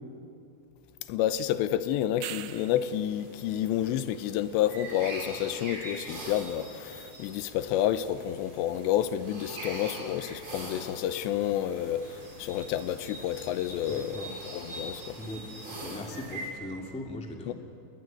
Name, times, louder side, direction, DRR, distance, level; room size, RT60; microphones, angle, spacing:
voice 1, 1.1-15.2 17.5-17.6, left 11 dB, 90° left, 3.1 m, -30 dB
sound 1, 2.0-3.0 7.7-7.8, right 14 dB, 75° right, 2.3 m, -40 dB
sound 2, 2.5-16.5, right 1 dB, 30° right, 5.8 m, -43 dB
voice 2, 13.8-14.3 15.2-15.5 15.8-17.5, left 1 dB, 5° left, 1.0 m, -39 dB
27.5 x 20.5 x 9.2 m
omnidirectional pair, 4.9 m